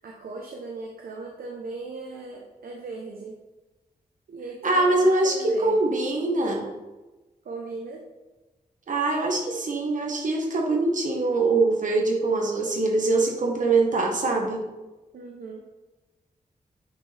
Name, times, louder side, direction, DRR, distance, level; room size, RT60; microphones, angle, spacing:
voice 1, 0.0-3.4 4.3-6.0 7.4-8.0 15.1-15.7, right 3 dB, 85° right, 0 dB, 1.0 m, -38 dB
voice 2, 4.6-5.3 5.6-6.7 8.9-14.6, right 2 dB, 60° right, 1 dB, 1.5 m, -23 dB
9.6 x 6.2 x 3.5 m, 1.1 s
wide cardioid pair, 145°, 15 cm